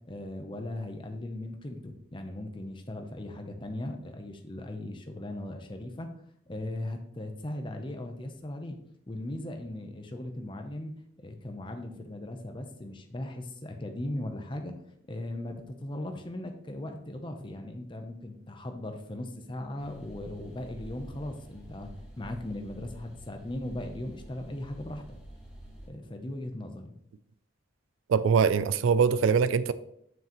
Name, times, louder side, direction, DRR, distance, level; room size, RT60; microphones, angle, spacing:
voice 1, 0.0-6.1 6.5-8.8 9.1-10.9 11.2-14.7 15.1-21.9 22.2-25.0 25.9-26.9, left 1 dB, 25° left, 0.7 m, -38 dB
sound 1, 19.8-25.9, right 1 dB, 5° right, 1.5 m, -48 dB
voice 2, 28.1-29.7, right 6 dB, 85° right, 0.4 m, -23 dB
7.3 x 5.9 x 3.0 m
head